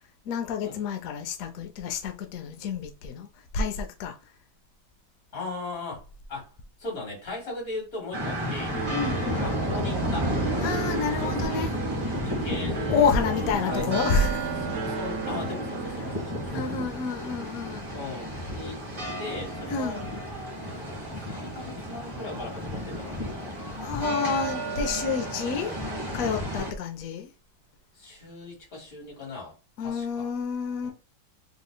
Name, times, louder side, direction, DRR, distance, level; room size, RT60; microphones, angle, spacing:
voice 1, 0.3-3.3 3.5-4.2 8.9-9.5 10.6-11.7 12.9-14.4 16.5-17.9 19.7-20.0 23.8-25.7 26.1-27.3 29.8-30.9, left 5 dB, 75° left, 0.7 m, -29 dB
voice 2, 5.3-6.0 6.3-6.5 6.8-8.8 9.3-10.3 11.2-11.6 12.2-14.0 14.6-16.7 17.9-18.8 19.2-20.0 20.4-20.5 21.2-23.6 27.9-30.3 30.8-30.9, left 2 dB, 45° left, 2.0 m, -38 dB
sound 1, 8.1-26.7, right 1 dB, 20° right, 1.1 m, -32 dB
sound 2, 8.7-16.7, right 4 dB, 85° right, 0.7 m, -35 dB
3.7 x 3.5 x 2.2 m
omnidirectional pair, 2.2 m